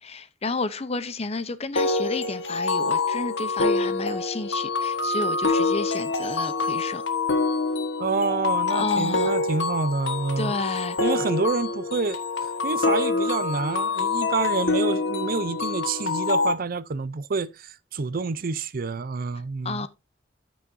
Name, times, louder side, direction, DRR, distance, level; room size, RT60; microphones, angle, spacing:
voice 1, 0.0-7.0 8.7-9.3 10.4-11.0 19.6-19.9, left 3 dB, 35° left, 0.7 m, -31 dB
sound 1, 1.8-16.5, left 3 dB, 80° left, 1.4 m, -26 dB
voice 2, 8.0-10.5 11.0-19.9, right 4 dB, 50° right, 0.5 m, -28 dB
14.0 x 6.2 x 2.6 m
head